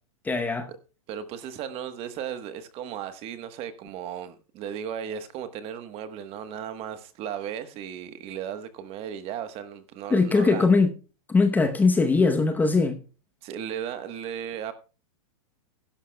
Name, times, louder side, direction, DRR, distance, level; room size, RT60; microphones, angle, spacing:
voice 1, 0.2-0.7 10.1-10.9 11.3-13.0, left 4 dB, 10° left, 0.8 m, -21 dB
voice 2, 1.1-10.7 13.4-14.7, right 9 dB, 30° right, 1.2 m, -35 dB
16.0 x 11.5 x 2.2 m
supercardioid pair, 150°, 18 cm